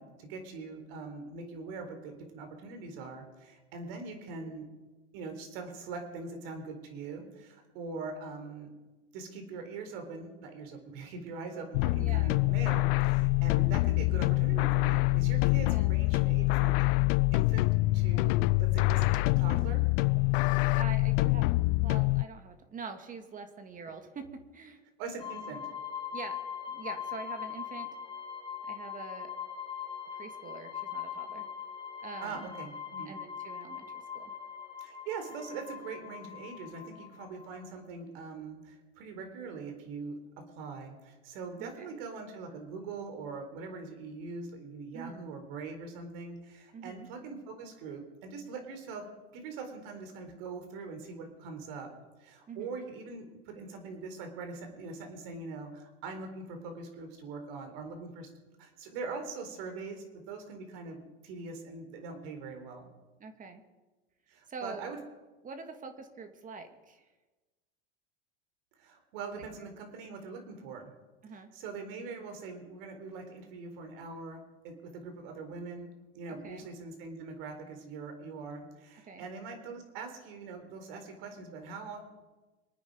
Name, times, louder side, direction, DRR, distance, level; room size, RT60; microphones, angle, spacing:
voice 1, 0.0-4.7 5.1-8.7 9.1-16.8 17.3-19.1 19.4-19.8 25.0-25.6 32.2-33.1 34.8-40.2 40.6-49.0 49.3-51.9 52.2-58.3 58.6-62.9 64.3-65.0 68.8-70.9 71.3-82.0, right 4 dB, 60° right, 5 dB, 4.2 m, -42 dB
sound 1, 11.7-22.2, left 22 dB, 55° left, 0.4 m, -26 dB
voice 2, 11.9-12.3 15.7-15.9 20.7-24.8 26.1-26.4 26.7-28.0 28.7-29.3 30.1-31.5 32.0-32.5 33.0-34.3 41.6-41.9 44.9-45.2 46.7-47.1 52.5-52.8 63.2-63.6 64.5-64.9 65.4-67.1 69.4-69.5 71.2-71.5 76.4-76.7 79.1-79.3, right 4 dB, 25° right, 7 dB, 1.9 m, -45 dB
sound 2, 25.2-37.7, left 8 dB, 15° left, 2.9 m, -41 dB
26.0 x 9.5 x 5.1 m, 1.2 s
hypercardioid pair, 110°, 32 cm